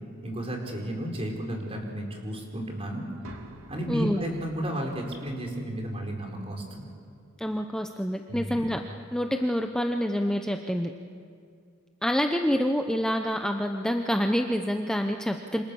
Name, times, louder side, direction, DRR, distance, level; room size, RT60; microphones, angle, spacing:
voice 1, 0.2-3.1 3.7-6.9 8.3-8.7, right 1 dB, 30° right, 1 dB, 4.5 m, -33 dB
sound 1, 3.2-7.2, right 1 dB, 90° right, 2.7 m, -51 dB
voice 2, 7.4-8.8 9.1-10.9 12.0-15.6, equal, 5° left, 4 dB, 0.8 m, -27 dB
28.0 x 26.0 x 7.1 m, 2.3 s
head